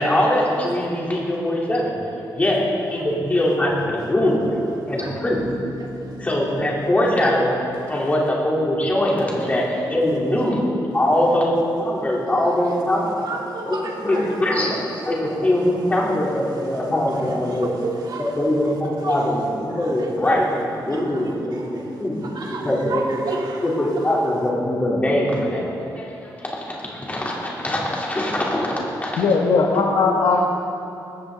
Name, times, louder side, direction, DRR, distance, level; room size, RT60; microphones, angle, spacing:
voice 1, 0.0-1.9 2.3-4.6 4.9-5.4 6.2-7.5 7.9-10.6 10.9-13.0 13.7-17.7 18.4-20.5 20.7-22.2 22.6-23.0 23.6-29.2, left 1 dB, 20° left, -4 dB, 3.5 m, -22 dB
Bass guitar, 5.3-9.0, left 2 dB, 40° right, 3.2 m, -41 dB
voice 2, 5.8-6.2 7.9-8.1 12.4-12.7 13.2-14.3 15.4-15.8 16.5-18.4 18.6-18.7 19.0-19.4 19.7-24.4, right 3 dB, 65° right, -1 dB, 2.5 m, -34 dB
voice 3, 29.2-30.5, left 4 dB, 75° left, 0 dB, 1.4 m, -18 dB
19.5 x 16.0 x 4.0 m, 2.8 s
wide cardioid pair, 140°, 8 cm